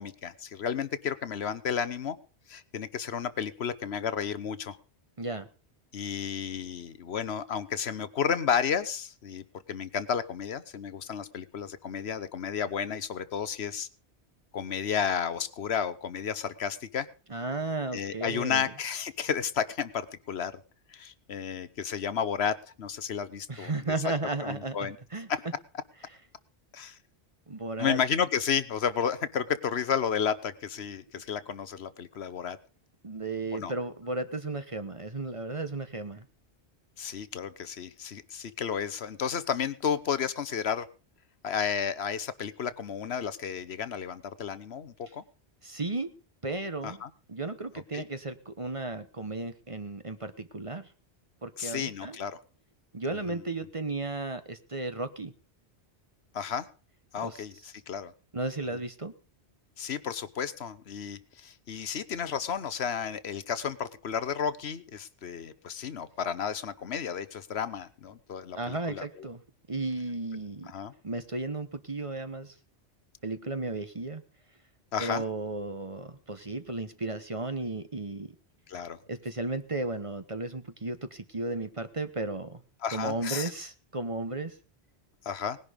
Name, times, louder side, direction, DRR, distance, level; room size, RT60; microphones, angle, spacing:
voice 1, 0.0-2.2 2.5-4.8 5.9-13.9 14.5-17.1 17.9-20.5 20.9-23.7 24.4-25.0 25.3-25.4 26.7-27.0 27.8-32.6 33.5-33.7 37.0-40.9 41.4-45.2 46.8-47.1 47.9-48.0 51.6-52.4 53.3-53.4 56.3-56.7 57.1-58.1 59.8-69.3 70.7-70.9 74.9-75.2 78.7-79.0 82.8-83.5 85.2-85.6, left 7 dB, 70° left, 15 dB, 1.1 m, -32 dB
voice 2, 17.3-18.7 23.5-25.3 27.5-28.0 33.0-36.2 45.6-46.1 46.4-47.0 47.3-50.9 51.4-52.2 52.9-55.3 57.2-57.4 58.3-59.1 68.5-69.4 69.7-70.7 71.0-72.5 73.2-74.2 75.0-78.3 79.1-82.6 82.9-84.6, right 2 dB, 30° right, 10 dB, 1.1 m, -34 dB
19.0 x 10.5 x 5.1 m, 0.38 s
omnidirectional pair, 1.1 m